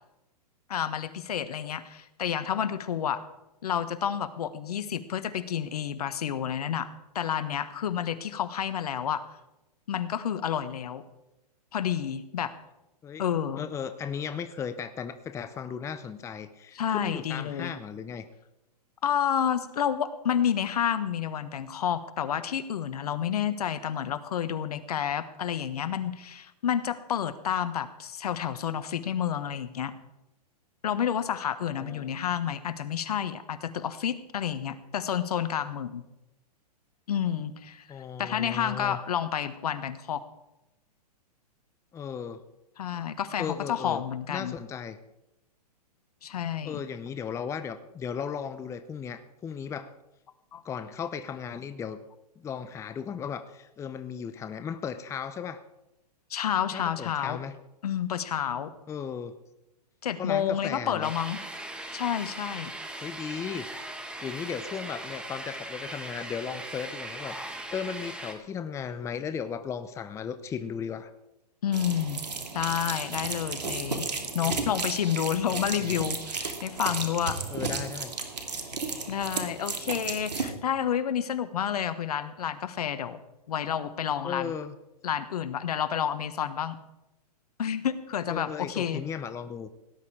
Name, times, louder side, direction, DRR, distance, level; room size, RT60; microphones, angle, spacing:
voice 1, 0.7-3.2 3.6-6.9 7.1-9.2 9.9-11.0 11.7-12.5 13.2-13.7 16.7-17.7 19.0-29.9 30.8-36.0 37.1-37.9 38.2-40.2 42.8-44.5 46.2-46.8 50.5-50.6 56.3-57.4 57.8-58.7 60.0-61.4 61.9-62.7 71.6-72.2 72.5-74.1 74.3-77.4 79.1-83.2 83.5-84.5 85.0-86.8 87.6-89.0, left 9 dB, 70° left, 13 dB, 1.3 m, -30 dB
voice 2, 13.6-18.2 31.7-32.1 37.9-39.0 41.9-42.4 43.4-44.0 44.3-45.0 46.6-49.9 50.6-52.0 52.4-55.6 56.7-57.5 58.9-59.3 60.2-61.1 63.0-63.7 64.2-71.1 74.4-74.7 75.5-76.1 77.5-78.1 84.2-84.7 88.3-89.7, left 7 dB, 15° left, 11 dB, 0.7 m, -36 dB
sound 1, 61.0-68.3, right 1 dB, 5° right, 1.7 m, -39 dB
sound 2, 71.7-80.5, right 4 dB, 80° right, 2.6 m, -34 dB
18.0 x 11.0 x 4.8 m, 0.92 s
hypercardioid pair, 120°, 21 cm